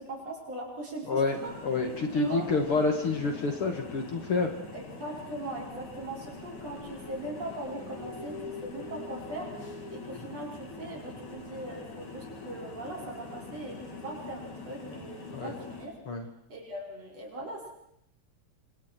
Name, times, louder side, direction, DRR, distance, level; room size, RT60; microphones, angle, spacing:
voice 1, 0.0-1.6 2.1-2.5 4.7-9.5 9.9-15.9 16.5-17.7, right 1 dB, 55° right, -2 dB, 6.9 m, -40 dB
voice 2, 1.1-1.4 1.6-4.5 15.3-15.5 16.1-16.2, left 3 dB, 50° left, 4 dB, 2.6 m, -28 dB
sound 1, 1.3-15.9, left 3 dB, 65° left, 4.9 m, -43 dB
26.5 x 26.5 x 4.6 m, 0.75 s
omnidirectional pair, 3.5 m